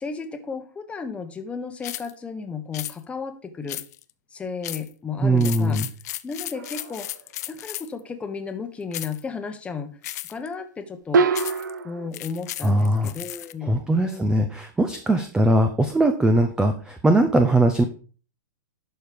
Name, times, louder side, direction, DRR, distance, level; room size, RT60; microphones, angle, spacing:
voice 1, 0.0-3.8 4.3-5.8 6.2-7.1 7.5-9.9 10.3-11.2 11.8-14.5, left 5 dB, 10° left, 7 dB, 1.1 m, -34 dB
sound 1, 1.8-2.1 2.7-3.0 3.7-4.1 4.6-4.9 5.4-8.0 8.9-9.2 10.0-10.5 11.3-11.7 12.1-13.5, left 14 dB, 60° left, 0.6 m, -35 dB
voice 2, 5.2-5.9 12.6-13.1 13.6-17.8, right 1 dB, 5° right, 7 dB, 0.7 m, -20 dB
sound 2, 6.5-7.2 11.1-12.1, right 4 dB, 80° right, 1.0 m, -24 dB
11.5 x 4.6 x 5.1 m, 0.39 s
hypercardioid pair, 140°, 10 cm